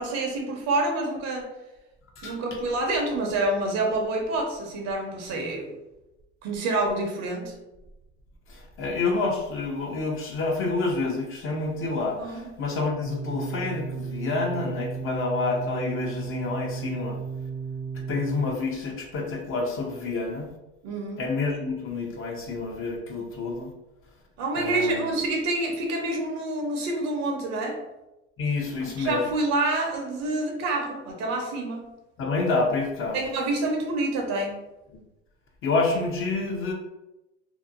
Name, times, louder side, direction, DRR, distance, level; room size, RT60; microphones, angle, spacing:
voice 1, 0.0-1.5 2.2-5.7 6.4-7.6 12.2-12.5 20.8-21.2 24.4-27.8 28.8-31.9 33.1-34.6, right 2 dB, 50° right, 1 dB, 0.8 m, -27 dB
voice 2, 8.5-17.2 17.9-20.5 21.2-23.7 24.6-25.0 28.4-29.2 32.2-33.2 34.9-35.0 35.6-36.7, left 3 dB, 40° left, 1 dB, 0.6 m, -28 dB
sound 1, 13.0-18.5, right 5 dB, 15° right, 0.4 m, -34 dB
2.8 x 2.1 x 2.5 m, 0.98 s
hypercardioid pair, 90°, 34 cm